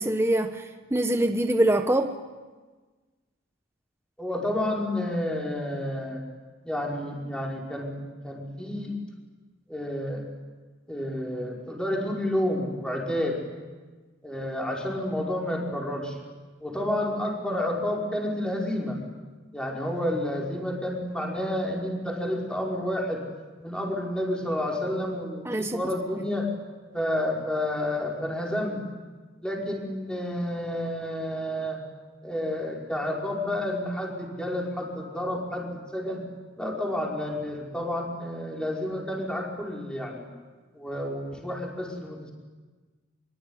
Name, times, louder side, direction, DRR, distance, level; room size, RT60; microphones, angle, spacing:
voice 1, 0.0-2.2 25.4-26.2, right 1 dB, 15° right, 1.1 m, -25 dB
voice 2, 4.2-6.2 6.6-8.9 9.7-10.2 10.9-13.4 14.2-16.2 16.6-19.0 19.5-23.2 23.6-26.5 26.9-28.8 29.4-31.8 32.2-36.2 36.6-40.3 40.7-42.3, left 1 dB, 5° left, 5.5 m, -30 dB
25.0 x 23.5 x 9.9 m
head